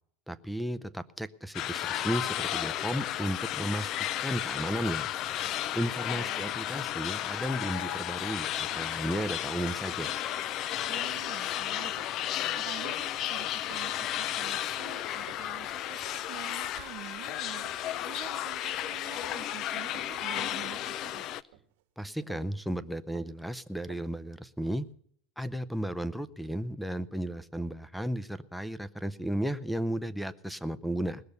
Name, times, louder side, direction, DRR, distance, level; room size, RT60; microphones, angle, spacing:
voice 1, 0.3-3.9 4.2-5.1 5.4-10.2 22.0-24.8 25.4-31.2, equal, ahead, 16 dB, 0.6 m, -34 dB
sound 1, 1.5-21.4, left 12 dB, 40° left, 0.4 m, -33 dB
voice 2, 6.1-6.6 10.9-21.2, right 16 dB, 55° right, 11 dB, 0.7 m, -47 dB
sound 2, 6.2-6.7 7.0-7.3 7.8-8.1 8.7-9.2 9.5-9.7 10.3-10.7 11.0-11.4 12.0-12.3 12.9-13.3 13.7-14.0 14.4-15.7 16.1-16.3 16.9-17.1 17.5-17.9 18.5-18.7 19.2-19.7 19.9-20.3 20.6-21.0 21.5-21.8 22.3-22.6 23.1-23.4 23.8-24.9, right 11 dB, 85° right, 1.7 m, -55 dB
20.0 x 6.8 x 6.7 m, 0.67 s
supercardioid pair, 145°, 0 cm